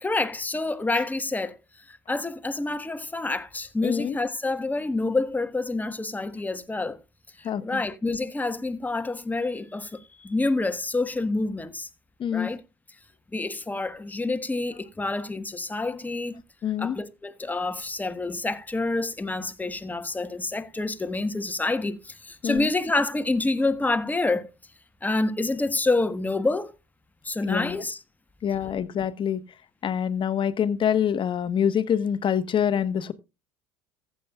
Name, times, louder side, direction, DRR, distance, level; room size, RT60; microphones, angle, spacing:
voice 1, 0.0-7.0 7.4-11.9 12.3-12.6 13.3-16.4 16.8-24.5 25.0-26.7 27.2-28.0, left 2 dB, 10° left, 1.4 m, -28 dB
voice 2, 3.8-4.2 7.4-7.8 12.2-12.5 16.6-17.0 22.4-22.7 27.4-27.8 28.4-29.4 29.8-33.1, left 8 dB, 40° left, 1.2 m, -25 dB
15.0 x 8.5 x 2.4 m
hypercardioid pair, 80°, 13 cm